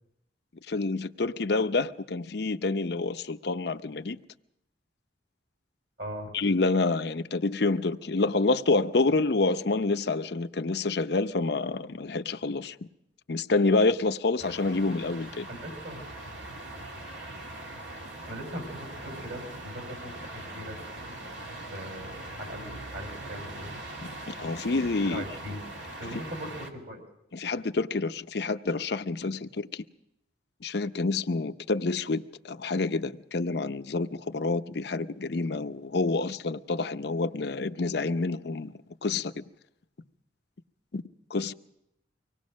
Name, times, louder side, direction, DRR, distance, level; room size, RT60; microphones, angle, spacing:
voice 1, 0.7-4.2 6.3-12.8 13.3-15.5 24.0-25.2 27.3-29.8 30.6-38.7 39.0-39.4 40.9-41.0 41.3-41.5, left 3 dB, 60° left, 0.7 m, -28 dB
voice 2, 6.0-6.3 15.5-16.0 18.3-20.8 21.7-23.7 25.0-25.7 26.0-27.0, equal, 60° right, 5.5 m, -40 dB
sound 1, 14.4-26.7, right 1 dB, 75° right, 2.7 m, -41 dB
24.5 x 18.5 x 6.3 m
head